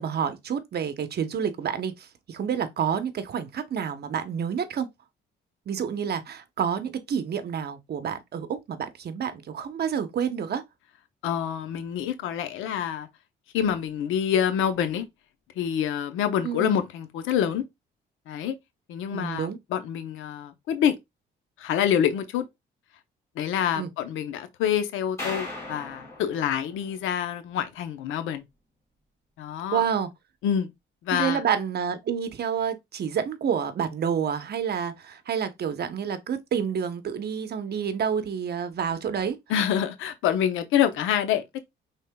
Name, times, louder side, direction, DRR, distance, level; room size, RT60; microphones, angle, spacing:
voice 1, 0.0-4.9 5.7-10.6 16.4-16.8 19.1-19.6 23.8-23.9 29.7-30.1 31.2-39.4, right 7 dB, 55° right, 0.8 m, -29 dB
voice 2, 11.2-13.1 13.5-15.1 15.6-17.6 18.3-18.5 18.9-21.0 21.6-22.4 23.4-28.4 29.4-29.8 30.4-30.7 31.0-31.4 39.5-41.6, left 9 dB, 90° left, 0.7 m, -26 dB
sound 1, 25.2-27.5, left 2 dB, 15° left, 3.3 m, -38 dB
5.4 x 3.6 x 2.2 m
cardioid pair, 90°, 20 cm